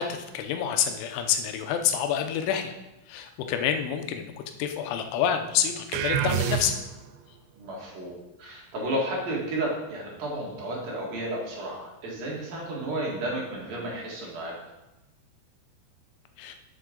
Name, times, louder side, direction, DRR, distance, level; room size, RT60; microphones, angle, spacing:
voice 1, 0.0-2.7 3.1-4.3 4.6-6.7 16.4-16.6, left 9 dB, 85° left, 6 dB, 3.2 m, -27 dB
sound 1, 5.9-7.1, right 9 dB, 80° right, 2.9 m, -27 dB
voice 2, 7.6-14.5, right 1 dB, 60° right, -3 dB, 3.2 m, -32 dB
11.0 x 7.1 x 3.9 m, 0.98 s
omnidirectional pair, 5.4 m